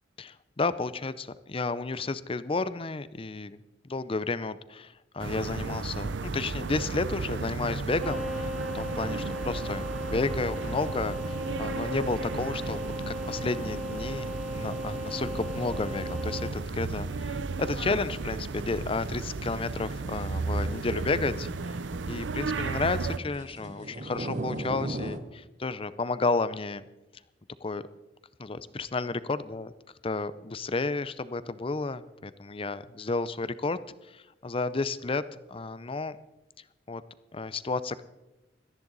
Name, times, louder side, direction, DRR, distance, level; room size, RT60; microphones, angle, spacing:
voice 1, 0.2-12.8 13.1-21.8 22.1-26.8 27.6-27.8 28.4-29.7 30.0-33.8 34.1-35.2 35.5-36.1 36.9-37.0 37.3-38.0, left 3 dB, 30° left, 15 dB, 0.6 m, -32 dB
sound 1, 5.2-23.2, right 3 dB, 85° right, 0.7 m, -34 dB
sound 2, 8.0-16.5, equal, 5° right, 1.9 m, -37 dB
sound 3, 20.0-25.2, right 1 dB, 45° right, 1.1 m, -39 dB
18.0 x 13.5 x 4.0 m, 1.0 s
head